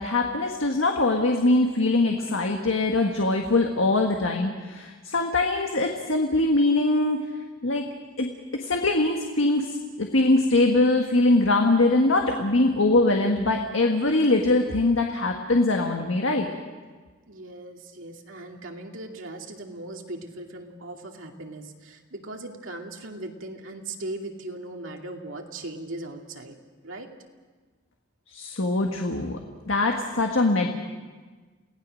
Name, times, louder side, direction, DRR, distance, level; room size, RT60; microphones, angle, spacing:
voice 1, 0.0-7.2 7.6-7.8 8.2-8.3 8.6-16.5 28.3-29.4 29.7-30.7, left 2 dB, 75° left, 2 dB, 1.7 m, -22 dB
voice 2, 17.3-26.6 26.8-27.1, right 2 dB, 75° right, 2 dB, 2.5 m, -38 dB
29.0 x 18.0 x 6.4 m, 1.4 s
head